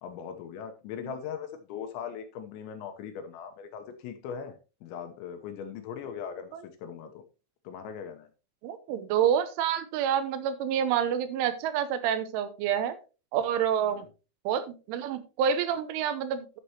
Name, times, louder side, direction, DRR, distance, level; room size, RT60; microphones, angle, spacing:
voice 1, 0.0-7.2 7.6-8.3 13.8-14.1, left 7 dB, 75° left, 7 dB, 3.1 m, -40 dB
voice 2, 8.6-13.0 13.3-14.0 14.5-16.6, right 9 dB, 80° right, 12 dB, 3.3 m, -28 dB
13.0 x 6.8 x 2.9 m, 0.31 s
omnidirectional pair, 5.7 m